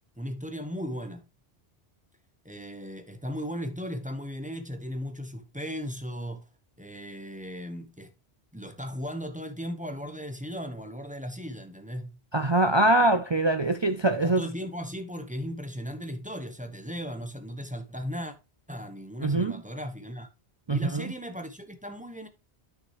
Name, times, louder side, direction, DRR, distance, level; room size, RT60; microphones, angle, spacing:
voice 1, 0.2-1.3 2.4-6.5 6.8-8.1 8.5-12.2 12.9-13.2 14.2-18.3 18.7-20.3 20.7-22.3, equal, 10° right, 0.9 m, -37 dB
voice 2, 12.3-14.4 19.2-19.6 20.7-21.1, right 2 dB, 35° right, 0.4 m, -23 dB
9.8 x 6.3 x 3.0 m
omnidirectional pair, 1.1 m